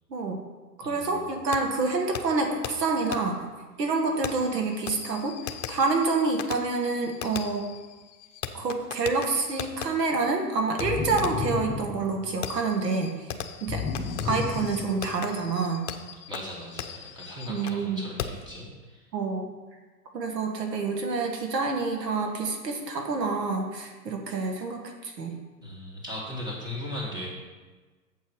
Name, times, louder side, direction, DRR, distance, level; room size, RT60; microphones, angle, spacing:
voice 1, 0.1-0.4 0.8-3.4 3.8-5.4 5.7-7.7 8.5-13.3 13.6-13.8 14.2-15.8 17.5-18.0 19.1-19.5 20.1-25.4, right 3 dB, 75° right, 2 dB, 1.8 m, -27 dB
voice 2, 0.8-1.2 16.3-19.0 25.6-27.3, left 1 dB, 10° right, -4 dB, 2.5 m, -38 dB
Fireworks, 1.5-1.6 2.1-2.2 2.6-2.7 3.1-3.2 4.2-9.9 10.8-10.9 11.2-11.5 12.4-17.8 18.2-18.5, left 9 dB, 50° left, 0.9 m, -38 dB
sound 1, 10.8-12.5 13.7-15.3, left 5 dB, 20° left, 1.3 m, -32 dB
8.5 x 7.3 x 4.8 m, 1.3 s
hypercardioid pair, 120°, 50 cm